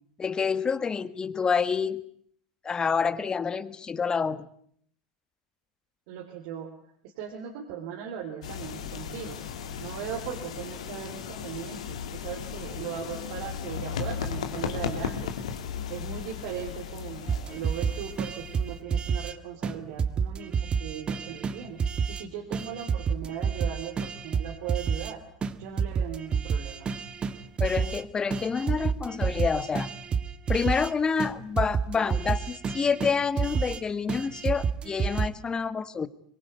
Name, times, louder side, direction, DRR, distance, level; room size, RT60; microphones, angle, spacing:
voice 1, 0.2-2.0 2.6-4.5 27.6-29.9 30.5-36.1, left 5 dB, 25° left, 15 dB, 1.6 m, -28 dB
voice 2, 6.1-6.7 7.0-9.4 9.8-15.3 15.9-25.2 25.6-26.9, right 8 dB, 60° right, 2 dB, 3.7 m, -38 dB
sound 1, 8.4-18.8, left 7 dB, 75° left, 2.9 m, -36 dB
sound 2, 17.3-19.3 19.6-19.7 20.0-22.2 22.5-25.1 25.4-28.0 28.3-30.9 31.2-31.3 31.6-33.8 34.1-35.3, right 6 dB, 30° right, 1.8 m, -29 dB
25.0 x 23.0 x 8.3 m, 0.64 s
hypercardioid pair, 80°, 3 cm